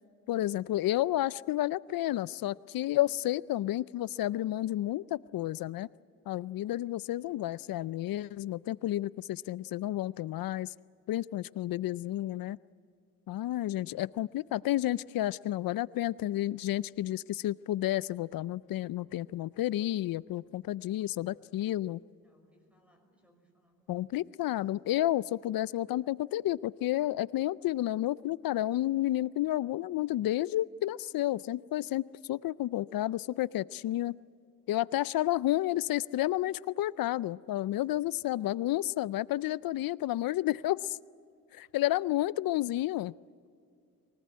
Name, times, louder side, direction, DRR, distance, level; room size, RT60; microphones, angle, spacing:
voice 1, 0.3-5.9 6.3-10.7 11.1-12.6 13.3-22.0 23.9-34.2 34.7-41.0 41.5-43.1, left 14 dB, 85° left, 21 dB, 0.5 m, -31 dB
voice 2, 7.0-7.3 22.2-24.6, equal, 5° right, 3 dB, 5.6 m, -68 dB
23.5 x 19.0 x 9.5 m, 2.4 s
cardioid pair, 95°, 34 cm